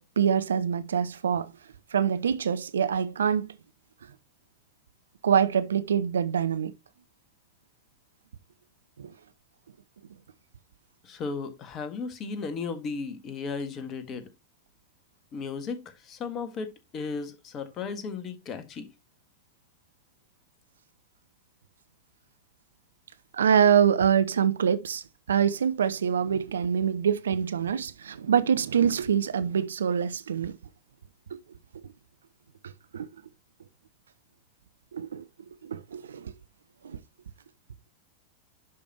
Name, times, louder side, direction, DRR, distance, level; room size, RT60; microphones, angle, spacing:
voice 1, 0.0-1.5 1.9-3.5 5.2-6.7 9.0-9.1 23.3-30.6 31.3-31.4 32.6-33.1 34.9-35.2 35.6-36.3 36.8-37.0, right 8 dB, 65° right, 0.5 m, -25 dB
voice 2, 11.0-14.3 15.3-18.9, left 4 dB, 30° left, 1.5 m, -35 dB
11.0 x 5.2 x 2.8 m
figure-of-eight pair, 90°, 0 cm